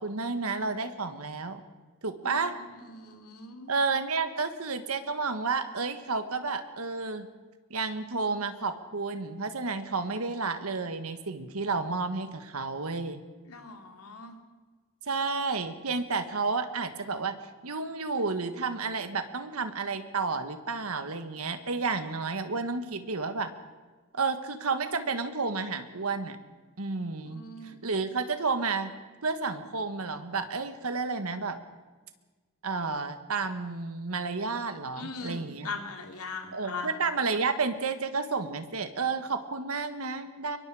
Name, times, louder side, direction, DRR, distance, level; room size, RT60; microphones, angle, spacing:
voice 1, 0.0-1.6 2.0-2.6 3.7-7.3 7.7-13.2 15.1-17.4 17.6-23.5 24.1-26.4 26.8-28.9 29.2-31.6 32.6-35.7 36.5-40.6, right 4 dB, 80° right, 9 dB, 1.5 m, -31 dB
voice 2, 2.2-3.7 13.5-14.4 27.3-27.8 34.9-36.9, left 3 dB, 85° left, 4 dB, 2.8 m, -40 dB
23.5 x 22.5 x 4.9 m, 1.3 s
head